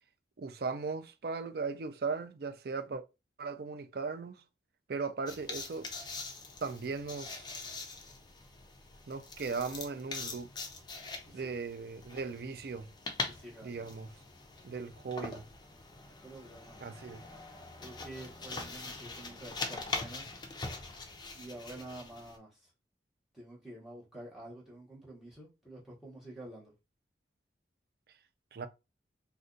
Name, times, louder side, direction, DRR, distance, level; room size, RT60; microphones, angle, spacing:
voice 1, 0.4-3.0 3.4-4.4 4.9-5.9 6.6-7.5 9.1-10.5 11.3-12.9 13.6-14.1 14.6-15.4 16.8-17.2 28.5-28.7, right 4 dB, 55° right, 0.4 m, -37 dB
sound 1, 5.3-22.4, left 3 dB, 25° left, 0.4 m, -43 dB
voice 2, 11.2-11.5 13.3-13.9 16.2-16.8 17.8-20.3 21.3-22.7 23.3-26.7, right 1 dB, ahead, 1.0 m, -48 dB
2.6 x 2.2 x 3.7 m
head